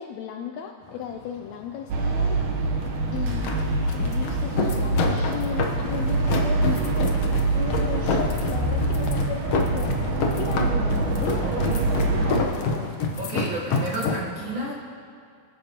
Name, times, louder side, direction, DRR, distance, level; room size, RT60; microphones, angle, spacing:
voice 1, 0.0-2.7 3.1-3.7 4.0-12.9, left 8 dB, 80° left, 5 dB, 1.6 m, -36 dB
sound 1, 0.8-14.2, left 3 dB, 65° left, 1.7 m, -29 dB
sound 2, 1.9-12.4, right 2 dB, 80° right, 2.6 m, -25 dB
voice 2, 11.4-11.8 13.2-14.7, right 1 dB, 50° right, -4 dB, 1.6 m, -31 dB
23.0 x 10.0 x 2.9 m, 2.2 s
omnidirectional pair, 3.6 m